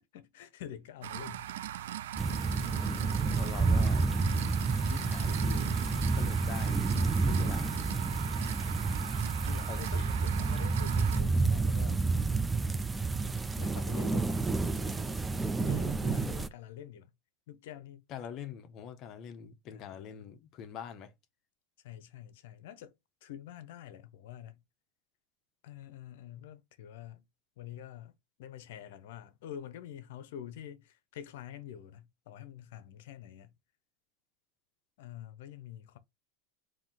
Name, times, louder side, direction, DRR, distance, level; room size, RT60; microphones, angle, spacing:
voice 1, 0.1-1.5 2.1-2.3 2.6-3.3 7.4-8.3 9.4-12.0 13.6-15.2 15.6-17.1 17.5-18.0 19.7-20.3 21.8-22.9 23.2-24.6 25.6-27.2 27.6-28.1 28.4-33.5 35.0-36.0, left 10 dB, 75° left, 0.7 m, -47 dB
sound 1, 1.0-11.2, right 12 dB, 85° right, 0.3 m, -40 dB
sound 2, 2.2-16.5, right 4 dB, 10° right, 0.4 m, -30 dB
voice 2, 3.3-4.2 4.8-5.7 6.1-6.8 7.2-7.7 9.7-10.0 18.1-21.1, left 8 dB, 40° left, 0.8 m, -44 dB
3.7 x 2.7 x 3.7 m
supercardioid pair, 130°, 0 cm